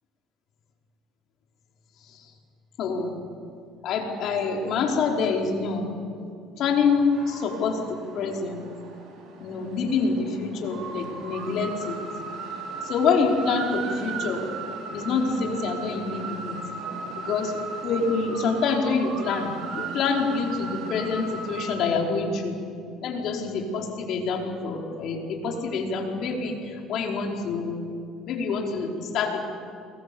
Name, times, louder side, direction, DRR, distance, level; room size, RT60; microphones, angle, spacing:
voice 1, 2.8-3.1 3.8-5.9 6.6-8.6 9.4-12.0 12.8-14.5 14.9-16.6 17.2-22.6 23.0-27.7 28.3-29.4, left 4 dB, 65° left, 1 dB, 4.8 m, -26 dB
sound 1, 6.8-21.7, right 4 dB, 65° right, 5.7 m, -37 dB
28.5 x 22.5 x 7.2 m, 2.4 s
supercardioid pair, 85°, 0 cm